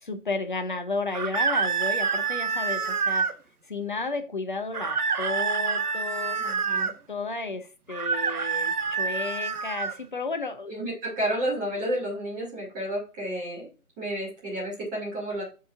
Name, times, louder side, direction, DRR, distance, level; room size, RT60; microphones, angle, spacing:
voice 1, 0.0-3.3 3.7-6.4 7.1-10.8, left 3 dB, 35° left, 0.7 m, -33 dB
sound 1, 1.1-3.4 4.7-6.9 7.9-10.0, right 5 dB, 85° right, 0.8 m, -27 dB
voice 2, 6.4-6.9 10.7-13.7 14.0-15.4, right 1 dB, 10° right, 2.5 m, -31 dB
8.3 x 4.7 x 2.4 m
figure-of-eight pair, 165°, 44 cm